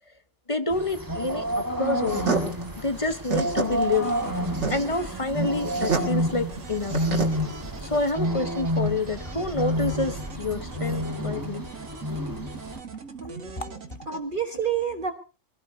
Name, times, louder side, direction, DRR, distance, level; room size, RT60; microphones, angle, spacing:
voice 1, 0.5-4.1 4.7-7.0 7.8-11.6 13.6-13.7, left 2 dB, 25° left, 10 dB, 1.0 m, -28 dB
sound 1, 0.7-12.8, equal, 15° right, 1.8 m, -30 dB
sound 2, 2.1-8.1, right 4 dB, 60° right, 2.7 m, -30 dB
sound 3, 3.6-14.2, right 6 dB, 80° right, 2.1 m, -41 dB
voice 2, 13.2-13.8 14.1-15.1, right 7 dB, 40° right, 6 dB, 1.4 m, -29 dB
24.0 x 17.0 x 2.7 m, 0.33 s
omnidirectional pair, 1.4 m